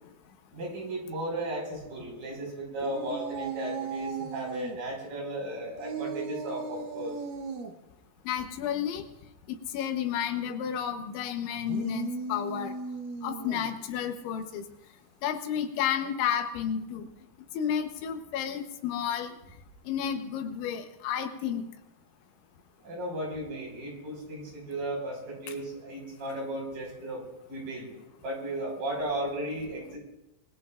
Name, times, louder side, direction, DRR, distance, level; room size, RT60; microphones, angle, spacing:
voice 1, 0.5-7.1 22.8-27.2 27.5-30.0, right 1 dB, 50° right, -1 dB, 6.6 m, -35 dB
sound 1, 2.8-4.8 5.8-7.7 11.5-13.8, right 5 dB, 65° right, 2.4 m, -37 dB
voice 2, 8.3-9.0 9.5-12.7 13.2-14.6 15.2-17.1 17.6-19.4 19.9-21.7, left 9 dB, 90° left, 6 dB, 3.6 m, -31 dB
27.0 x 19.0 x 2.5 m, 0.93 s
omnidirectional pair, 5.2 m